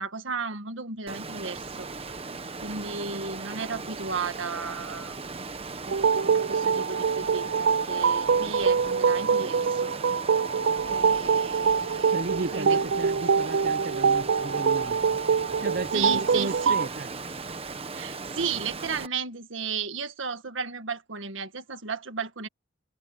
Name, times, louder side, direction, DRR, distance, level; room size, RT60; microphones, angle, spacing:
voice 1, 0.0-1.9 2.6-5.2 6.3-9.9 10.8-12.1 12.5-12.8 15.9-16.8 17.9-22.5, right 5 dB, 85° right, 1.7 m, -34 dB
Water, 1.1-19.1, right 3 dB, 30° right, 1.2 m, -38 dB
sound 1, 5.9-16.9, right 6 dB, 70° right, 0.4 m, -24 dB
voice 2, 12.1-15.2 15.6-17.1, right 3 dB, 50° right, 0.8 m, -34 dB
head